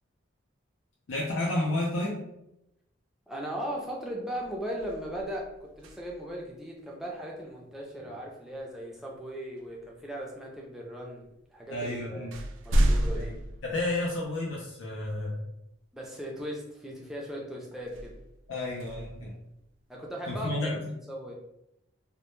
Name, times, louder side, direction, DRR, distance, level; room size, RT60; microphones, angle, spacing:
voice 1, 1.1-2.2 11.7-12.4 13.1-13.3 13.6-15.4 18.5-19.3 20.3-20.8, left 1 dB, 80° left, -3 dB, 0.5 m, -31 dB
voice 2, 3.3-12.4 12.6-13.3 15.9-18.1 19.9-20.8 21.1-21.3, equal, ahead, -3 dB, 0.4 m, -38 dB
sound 1, 3.7-4.0 4.4-6.4 8.6-8.8 9.6-10.3 11.2-11.3 11.7-14.6 15.1-15.2 17.8-20.0, right 1 dB, 80° right, 0.3 m, -32 dB
2.1 x 2.1 x 2.9 m, 0.86 s
head